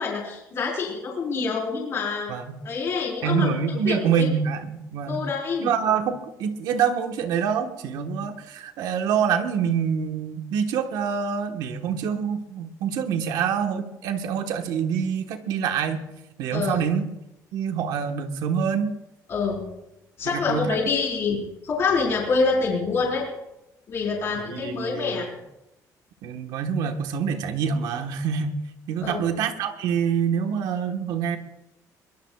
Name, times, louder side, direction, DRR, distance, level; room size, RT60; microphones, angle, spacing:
voice 1, 0.0-2.4 2.6-3.6 3.8-4.3 5.1-5.7 16.5-16.8 19.3-19.6 20.2-23.3 23.9-25.3 29.0-29.3, left 4 dB, 40° left, -2 dB, 4.5 m, -26 dB
voice 2, 2.3-2.6 3.2-5.3 5.6-16.1 16.4-17.0 17.5-18.9 20.2-20.8 24.5-25.2 26.2-28.6 28.9-31.4, right 7 dB, 80° right, 5 dB, 1.4 m, -26 dB
22.5 x 22.0 x 2.4 m, 0.90 s
cardioid pair, 180°, 7 cm